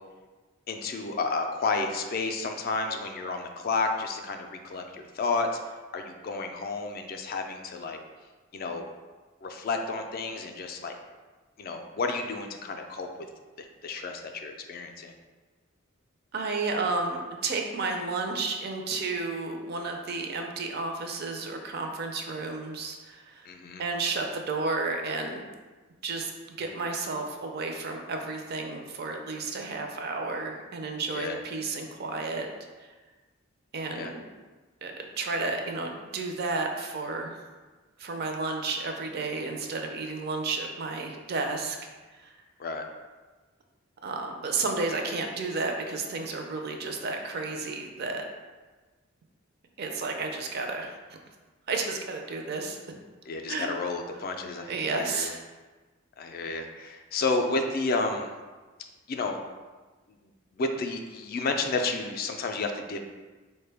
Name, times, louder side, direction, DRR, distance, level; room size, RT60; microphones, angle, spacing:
voice 1, 0.7-5.5 5.9-8.0 8.5-8.8 9.4-10.9 11.6-13.1 13.6-15.1 23.5-23.8 31.1-31.4 34.0-34.1 42.6-42.8 53.3-55.3 56.2-58.3 59.1-59.4 60.6-63.0, left 3 dB, 45° left, 4 dB, 0.3 m, -31 dB
voice 2, 16.3-23.5 23.8-25.4 26.0-26.3 26.6-32.5 32.8-32.9 33.7-34.2 34.8-37.4 38.0-42.3 44.0-48.2 49.8-51.0 51.7-52.8 53.5-53.7 54.7-55.4, right 3 dB, 50° right, 3 dB, 0.4 m, -32 dB
4.4 x 2.1 x 3.3 m, 1.3 s
head